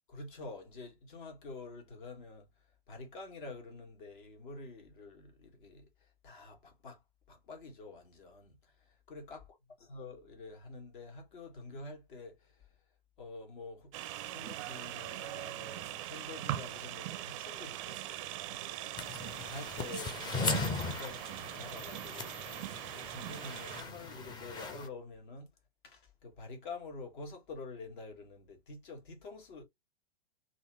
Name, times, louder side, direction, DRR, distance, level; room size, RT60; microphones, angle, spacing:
voice 1, 0.1-2.5 2.9-7.0 7.3-8.7 9.1-9.4 9.9-12.6 13.2-13.9 14.2-22.5 22.8-25.5 25.8-29.6, left 3 dB, 55° left, 1.8 m, -48 dB
sound 1, 13.9-23.8, right 14 dB, 35° right, 0.4 m, -41 dB
sound 2, 19.0-24.9, left 3 dB, 15° left, 0.7 m, -38 dB
3.9 x 2.9 x 3.1 m
figure-of-eight pair, 105°, 31 cm